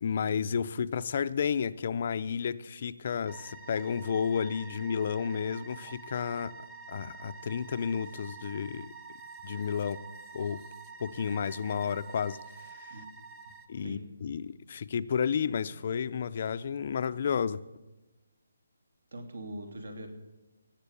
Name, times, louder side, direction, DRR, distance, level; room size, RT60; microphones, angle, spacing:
voice 1, 0.0-6.5 6.9-8.9 9.4-10.0 10.3-10.6 11.0-12.4 12.7-12.9 13.7-17.6, left 7 dB, 30° left, 13 dB, 0.5 m, -31 dB
sound 1, 3.3-13.7, right 4 dB, 10° right, 0.6 m, -48 dB
voice 2, 19.1-20.1, right 1 dB, 75° right, 5 dB, 3.0 m, -41 dB
17.0 x 7.4 x 8.3 m, 1.1 s
hypercardioid pair, 175°, 0 cm